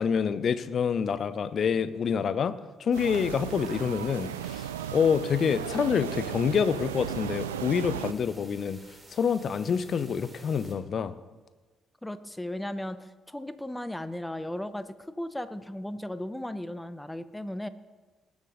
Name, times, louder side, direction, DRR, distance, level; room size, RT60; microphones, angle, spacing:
voice 1, 0.0-8.8 9.1-11.1, left 6 dB, 50° left, 15 dB, 0.7 m, -27 dB
sound 1, 2.9-10.7, right 2 dB, 20° right, 3.0 m, -52 dB
sound 2, 2.9-8.1, right 10 dB, 85° right, 0.3 m, -36 dB
voice 2, 12.0-17.7, left 1 dB, 10° left, 13 dB, 0.8 m, -36 dB
19.0 x 7.2 x 3.9 m, 1.3 s
figure-of-eight pair, 45°, 0 cm